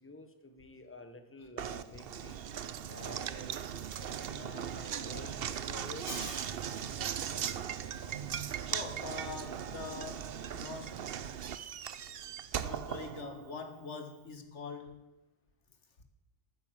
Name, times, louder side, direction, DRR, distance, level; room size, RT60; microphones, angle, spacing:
voice 1, 0.0-2.4 2.9-6.1 11.9-12.0, left 2 dB, 10° left, 7 dB, 1.2 m, -50 dB
Knock, 1.6-13.7, right 8 dB, 60° right, 0.8 m, -39 dB
voice 2, 6.1-7.1 7.9-8.0 8.7-11.1 12.1-12.3 12.6-15.0, left 4 dB, 85° left, 7 dB, 1.9 m, -44 dB
13.5 x 9.4 x 7.6 m, 0.98 s
omnidirectional pair, 1.2 m